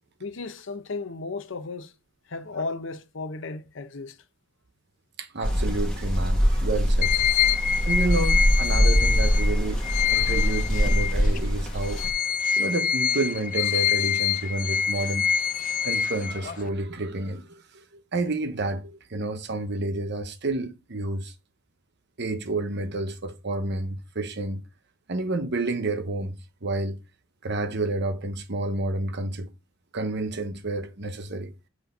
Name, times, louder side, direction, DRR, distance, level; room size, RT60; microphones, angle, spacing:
voice 1, 0.2-1.9 2.3-4.2, left 3 dB, 65° left, 0.8 m, -34 dB
voice 2, 5.2-7.2 7.8-9.8 10.1-12.0 12.6-15.3 15.8-21.3 22.2-24.6 25.1-27.0 27.4-29.5 29.9-31.5, right 2 dB, 55° right, 1.0 m, -30 dB
sound 1, 5.4-12.1, equal, 5° left, 1.4 m, -23 dB
sound 2, 7.0-11.4 11.8-16.7, left 8 dB, 40° left, 0.4 m, -26 dB
8.0 x 3.2 x 5.3 m
head